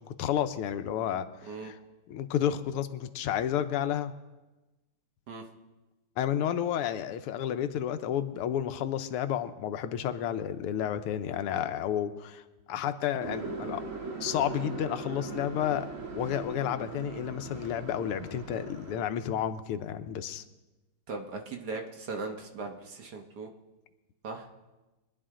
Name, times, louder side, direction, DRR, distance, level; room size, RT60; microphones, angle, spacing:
voice 1, 0.0-1.8 2.1-4.1 6.2-12.4 12.7-13.8 14.2-15.9 16.1-20.4, left 10 dB, 85° left, 10 dB, 1.7 m, -31 dB
voice 2, 1.4-1.7 5.3-5.4 21.1-23.5 24.2-24.5, right 3 dB, 55° right, 4 dB, 1.5 m, -38 dB
sound 1, 13.2-19.0, right 4 dB, 40° right, 2.0 m, -39 dB
22.5 x 10.5 x 3.8 m, 1.1 s
omnidirectional pair, 2.4 m